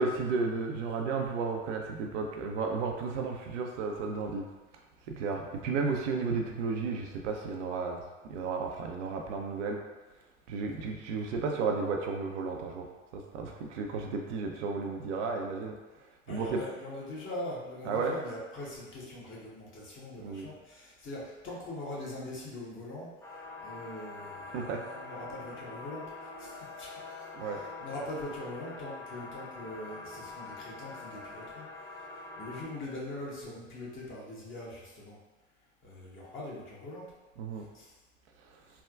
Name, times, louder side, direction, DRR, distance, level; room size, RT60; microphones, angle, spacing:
voice 1, 0.0-4.4 5.1-8.0 8.3-9.8 10.5-12.9 13.1-15.8 16.3-16.6 17.8-18.2 20.2-20.5 24.5-24.8 27.3-27.6 37.4-37.7 38.4-38.6, right 4 dB, 70° right, 2 dB, 0.5 m, -33 dB
voice 2, 16.3-35.2 35.8-37.0 37.6-37.9, left 1 dB, 30° left, -5 dB, 1.0 m, -42 dB
sound 1, 23.2-32.7, left 3 dB, 10° left, 0.3 m, -45 dB
3.4 x 2.1 x 2.3 m, 1.2 s
hypercardioid pair, 80°, 38 cm